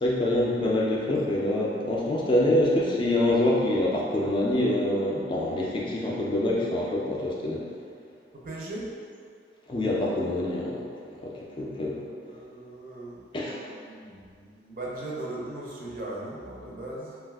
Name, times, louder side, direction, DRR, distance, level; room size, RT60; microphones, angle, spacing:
voice 1, 0.0-7.6 9.7-12.0 13.3-13.6, left 1 dB, 25° left, -4 dB, 0.3 m, -26 dB
voice 2, 8.3-8.9 12.3-13.5 13.8-17.2, right 1 dB, 50° right, -4 dB, 0.5 m, -38 dB
2.6 x 2.3 x 3.3 m, 2.2 s
head